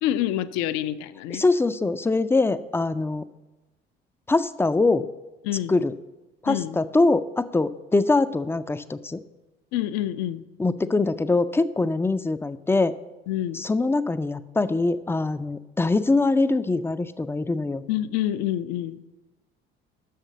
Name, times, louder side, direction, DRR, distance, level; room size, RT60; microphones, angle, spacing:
voice 1, 0.0-1.4 5.4-5.8 6.5-6.8 9.7-10.4 13.3-13.6 17.9-19.0, left 12 dB, 65° left, 14 dB, 0.5 m, -27 dB
voice 2, 1.3-3.2 4.3-5.1 5.7-5.9 6.4-9.2 10.6-12.9 13.5-17.8, left 3 dB, 10° left, 13 dB, 0.3 m, -23 dB
6.4 x 5.7 x 7.2 m, 1.1 s
hypercardioid pair, 55°, 30 cm